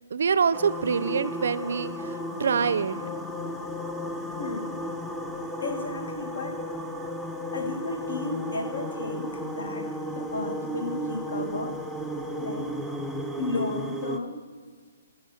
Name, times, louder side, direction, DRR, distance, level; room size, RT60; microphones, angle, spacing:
voice 1, 0.1-3.0, right 6 dB, 65° right, 16 dB, 0.4 m, -25 dB
sound 1, 0.5-14.2, equal, ahead, 0.4 m, -34 dB
voice 2, 4.4-4.7 5.6-6.6 7.5-11.8 12.4-12.7 13.4-14.4, left 3 dB, 80° left, 6 dB, 1.4 m, -33 dB
13.0 x 4.5 x 6.4 m, 1.5 s
hypercardioid pair, 160°, 0 cm